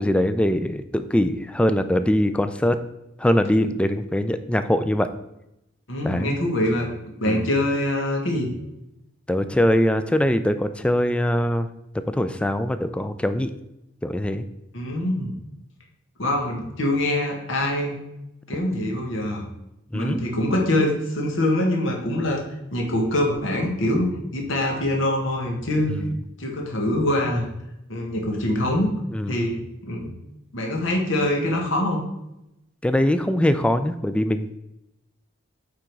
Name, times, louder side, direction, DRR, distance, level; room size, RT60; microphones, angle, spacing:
voice 1, 0.0-2.8 3.2-5.1 6.0-6.4 7.2-7.5 9.3-11.7 12.1-13.5 14.0-14.4 19.9-20.2 25.9-26.1 29.1-29.4 32.8-34.6, left 1 dB, 5° left, 10 dB, 0.3 m, -22 dB
voice 2, 5.9-6.9 7.2-8.5 14.7-15.3 16.2-18.0 18.5-19.4 19.9-22.4 22.7-24.1 24.3-25.9 26.4-27.5 27.9-28.9 29.3-29.6 29.8-30.1 30.5-32.0, left 1 dB, 75° left, 0 dB, 1.6 m, -24 dB
8.5 x 3.9 x 4.6 m, 0.88 s
head